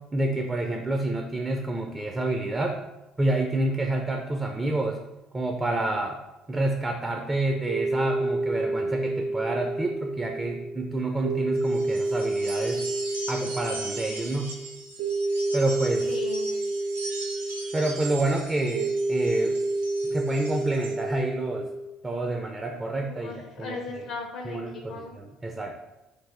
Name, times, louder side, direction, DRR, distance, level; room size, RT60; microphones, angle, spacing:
voice 1, 0.1-2.8 3.2-5.0 5.3-6.2 6.5-12.8 13.3-14.5 15.5-16.1 17.7-19.6 20.0-21.7 22.0-23.8 24.4-25.8, right 2 dB, 20° right, 3 dB, 0.4 m, -28 dB
sound 1, 7.7-21.9, right 2 dB, 45° right, 1.0 m, -29 dB
sound 2, 11.6-21.0, right 3 dB, 75° right, 0.5 m, -40 dB
voice 2, 16.1-16.5 23.0-25.2, left 4 dB, 55° left, 2 dB, 0.4 m, -37 dB
3.3 x 2.5 x 3.6 m, 1.0 s
figure-of-eight pair, 55°, 0 cm